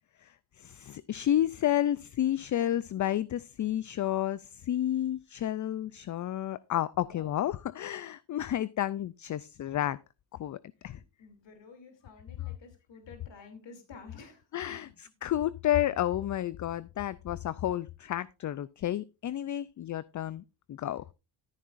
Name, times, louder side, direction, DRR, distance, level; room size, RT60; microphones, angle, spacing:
voice 1, 0.2-10.0 10.3-10.6 10.8-11.0 14.5-14.9 15.2-21.0, left 12 dB, 40° left, 0.4 m, -31 dB
voice 2, 7.1-7.5 10.8-14.9, left 4 dB, 60° left, 3.0 m, -52 dB
13.5 x 9.5 x 2.5 m
cardioid pair, 80°, 49 cm